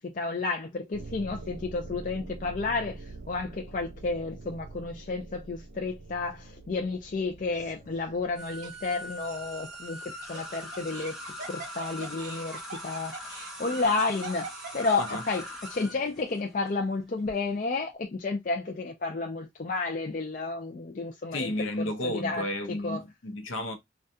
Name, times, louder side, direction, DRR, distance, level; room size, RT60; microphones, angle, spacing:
voice 1, 0.0-11.2 11.5-14.5 14.7-21.5 21.8-23.0, left 3 dB, 40° left, 0.4 m, -31 dB
sound 1, 0.9-10.4, right 2 dB, 80° right, 0.6 m, -45 dB
Laughter, 7.5-8.0 8.6-8.7 10.0-15.6, right 2 dB, 40° right, 1.4 m, -42 dB
sound 2, 8.4-17.3, equal, ahead, 0.8 m, -42 dB
voice 2, 21.3-23.8, left 1 dB, 85° left, 0.7 m, -32 dB
3.5 x 2.3 x 2.6 m
head